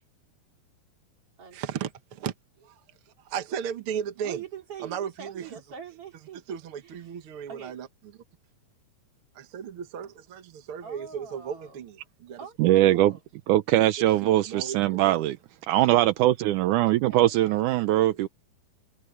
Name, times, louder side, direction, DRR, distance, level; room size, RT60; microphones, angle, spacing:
voice 1, 1.5-2.3 2.6-2.8 3.2-4.4 4.8-5.6 6.5-7.9 9.3-13.1 14.0-15.2 18.1-18.3, right 8 dB, 60° right, 1.5 m, -36 dB
voice 2, 4.2-6.6 6.8-7.1 7.5-7.8 10.8-11.8 12.4-12.6 12.9-13.2 16.9-17.6, right 7 dB, 40° right, 4.0 m, -43 dB
voice 3, 12.6-13.2 13.5-15.4 15.7-18.3, right 15 dB, 80° right, 1.9 m, -21 dB
omnidirectional pair, 4.3 m